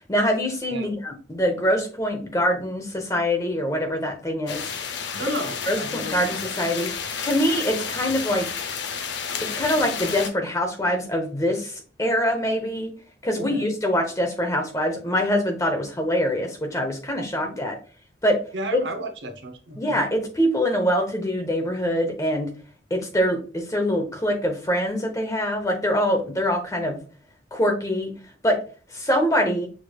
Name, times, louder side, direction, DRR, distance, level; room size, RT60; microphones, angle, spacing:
voice 1, 0.1-4.6 5.7-8.5 9.6-12.9 13.2-17.8 18.2-18.4 19.8-22.5 22.9-23.4 23.7-27.0 27.5-28.1 28.4-28.6 28.9-29.7, equal, 15° left, 3 dB, 0.8 m, -24 dB
sound 1, 4.5-10.3, left 6 dB, 70° left, 0.6 m, -31 dB
voice 2, 5.1-6.2 13.3-13.7 17.4-17.6 18.5-20.0, right 1 dB, 70° right, 5 dB, 0.8 m, -33 dB
6.1 x 3.2 x 2.3 m, 0.37 s
head